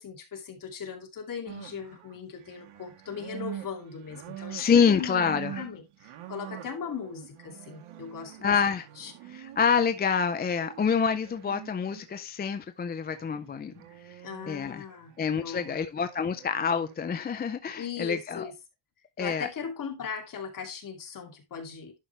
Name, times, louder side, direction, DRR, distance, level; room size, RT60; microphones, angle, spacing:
voice 1, 0.0-8.5 9.0-9.1 14.2-15.1 15.4-15.8 17.8-18.5 19.2-21.9, left 6 dB, 40° left, 2.5 m, -38 dB
sound 1, 1.5-12.2 13.1-14.6 14.9-15.7 16.1-16.9, right 12 dB, 75° right, 1.6 m, -45 dB
voice 2, 4.5-5.6 8.4-8.9 9.3-13.7 14.0-14.2 14.5-14.8 15.2-18.5 19.2-19.5, left 6 dB, 20° left, 0.4 m, -27 dB
11.0 x 5.4 x 3.2 m
cardioid pair, 165°, 50 cm